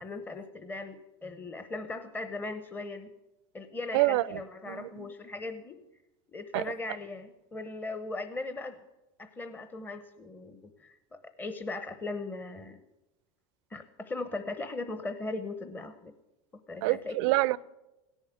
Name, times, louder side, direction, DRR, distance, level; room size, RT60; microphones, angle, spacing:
voice 1, 0.0-3.1 3.5-5.8 6.3-8.8 9.2-12.8 13.7-16.1 16.7-17.3, left 2 dB, 10° left, 0.8 m, -38 dB
voice 2, 16.8-17.6, right 19 dB, 70° right, 0.5 m, -26 dB
17.0 x 7.2 x 9.2 m
supercardioid pair, 125°, 15 cm